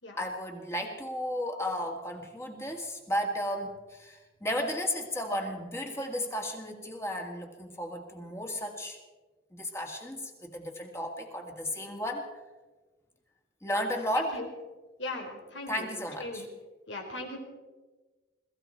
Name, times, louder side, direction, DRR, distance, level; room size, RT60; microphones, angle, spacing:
voice 1, 0.2-9.0 9.5-12.3 13.6-14.4 15.7-16.5, equal, 15° left, 2 dB, 1.9 m, -34 dB
voice 2, 14.2-14.5 15.0-15.7 16.2-16.4 16.9-17.4, left 2 dB, 80° left, 3 dB, 3.6 m, -38 dB
21.5 x 14.5 x 4.4 m, 1.3 s
head